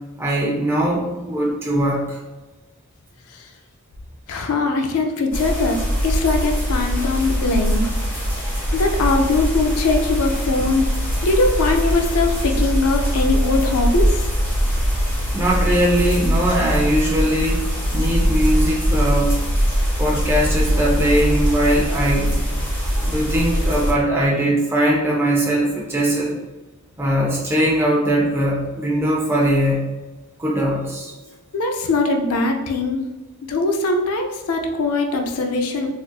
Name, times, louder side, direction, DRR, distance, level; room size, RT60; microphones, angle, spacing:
voice 1, 0.2-2.2 10.6-10.7 15.3-17.6 17.9-19.4 20.0-22.3 23.0-26.4 27.0-29.9 30.4-31.1, right 1 dB, 10° right, -4 dB, 0.6 m, -20 dB
voice 2, 4.3-7.8 8.7-10.9 11.2-14.2 31.5-33.0 33.5-35.9, left 3 dB, 85° left, 3 dB, 0.4 m, -21 dB
sound 1, 5.3-23.9, equal, 10° left, 1.3 m, -21 dB
4.1 x 2.4 x 2.3 m, 1.2 s
head